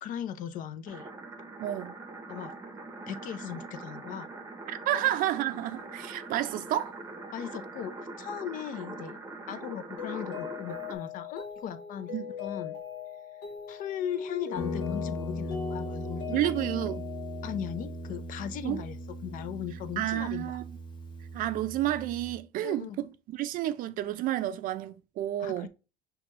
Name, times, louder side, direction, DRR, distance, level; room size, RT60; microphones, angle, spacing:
voice 1, 0.0-1.1 2.3-2.5 3.1-4.3 7.3-9.2 9.5-12.1 12.4-12.8 13.7-16.4 17.4-20.6 22.6-23.0 25.4-25.7, left 9 dB, 55° left, 0.6 m, -38 dB
sound 1, 0.9-10.9, right 2 dB, 15° right, 0.7 m, -43 dB
voice 2, 1.6-1.9 4.7-7.0 12.1-12.3 16.3-17.1 18.6-18.8 20.0-20.6 21.3-25.7, right 13 dB, 55° right, 0.5 m, -30 dB
Mallet percussion, 10.0-18.1, left 7 dB, 85° left, 1.1 m, -40 dB
Guitar, 14.6-22.4, left 1 dB, 30° left, 0.9 m, -38 dB
5.9 x 2.3 x 2.9 m
cardioid pair, 115°, 17 cm